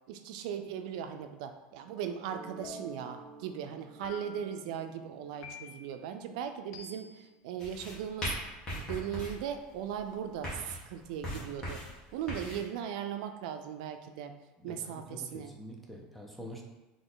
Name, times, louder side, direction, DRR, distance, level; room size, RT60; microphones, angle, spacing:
voice 1, 0.1-8.3 8.7-11.8 12.1-14.3 14.6-15.5, right 8 dB, 75° right, 7 dB, 0.4 m, -38 dB
Mallet percussion, 2.3-7.8, right 5 dB, 45° right, 0.7 m, -54 dB
sound 1, 2.6-3.2 4.0-4.6 5.4-6.0 6.7-7.3, left 4 dB, 65° left, 0.5 m, -48 dB
sound 2, 7.6-12.6, equal, 20° left, 1.2 m, -40 dB
voice 2, 14.6-16.6, equal, ahead, 0 dB, 0.5 m, -46 dB
4.1 x 2.9 x 3.8 m, 1.1 s
cardioid pair, 175°, 4 cm